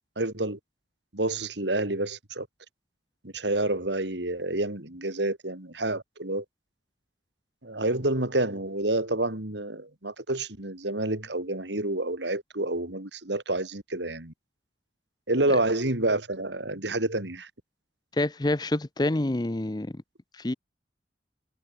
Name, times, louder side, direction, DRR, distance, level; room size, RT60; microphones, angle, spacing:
voice 1, 0.2-0.6 1.1-2.5 3.2-6.5 7.6-14.3 15.3-17.5, right 2 dB, 70° right, 3.4 m, -28 dB
voice 2, 18.2-20.0 20.3-20.5, left 1 dB, 20° left, 0.6 m, -27 dB
head